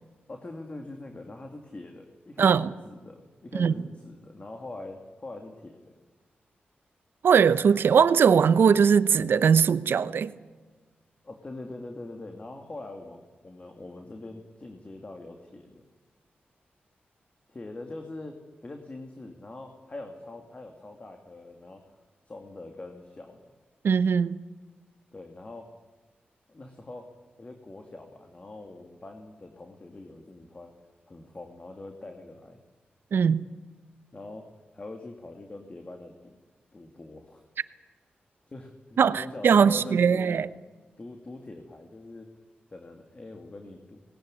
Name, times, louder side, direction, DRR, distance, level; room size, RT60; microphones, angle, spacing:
voice 1, 0.3-6.0 11.2-15.8 17.5-22.0 22.3-23.5 25.1-25.7 26.5-27.1 27.4-30.7 31.1-32.6 34.1-34.5 34.7-36.4 36.7-37.5 38.5-40.3 41.0-42.3 42.7-44.0, left 2 dB, 35° left, 2.4 m, -43 dB
voice 2, 2.4-2.7 3.5-3.7 7.2-10.3 23.8-24.4 33.1-33.5 39.0-40.5, right 6 dB, 80° right, 0.8 m, -20 dB
19.5 x 17.5 x 9.8 m
cardioid pair, 75°, 4 cm